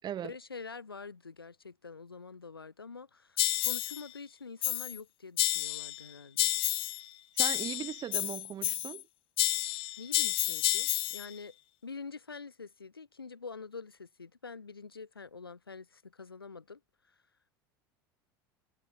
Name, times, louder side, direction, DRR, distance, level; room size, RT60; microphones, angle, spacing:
voice 1, 0.2-6.5 10.0-11.6 11.8-16.8 17.1-17.2, left 4 dB, 90° left, 4.5 m, -46 dB
sound 1, 3.4-4.0 4.6-5.0 5.4-6.0 6.4-7.0 7.4-9.0 9.4-11.3, left 16 dB, 50° left, 2.0 m, -30 dB
voice 2, 7.3-9.0, right 10 dB, 35° right, 1.9 m, -38 dB
figure-of-eight pair, 75°, 12 cm